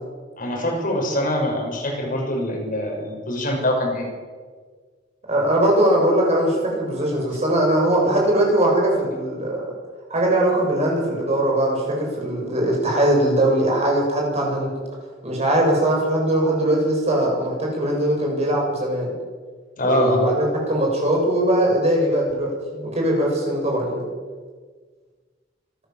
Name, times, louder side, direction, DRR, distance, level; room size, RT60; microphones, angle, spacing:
voice 1, 0.4-4.1 19.8-20.2, left 1 dB, 50° left, 0 dB, 6.2 m, -24 dB
voice 2, 5.3-9.7 10.1-14.7 15.2-19.1 19.8-24.1, right 1 dB, 35° right, -1 dB, 7.5 m, -20 dB
26.0 x 14.0 x 7.5 m, 1.5 s
head